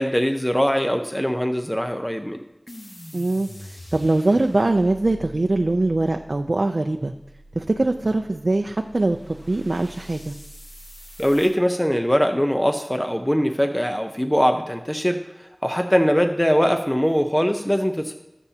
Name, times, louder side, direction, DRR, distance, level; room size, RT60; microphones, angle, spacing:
voice 1, 0.0-2.4 11.2-15.2 15.6-18.1, equal, 10° left, 5 dB, 0.7 m, -21 dB
sound 1, 2.7-11.6, equal, 45° left, 1.3 m, -44 dB
voice 2, 3.1-7.1 7.5-10.3, right 2 dB, 80° right, 4 dB, 0.5 m, -22 dB
20.0 x 7.1 x 2.8 m, 0.97 s
wide cardioid pair, 45°, 0 cm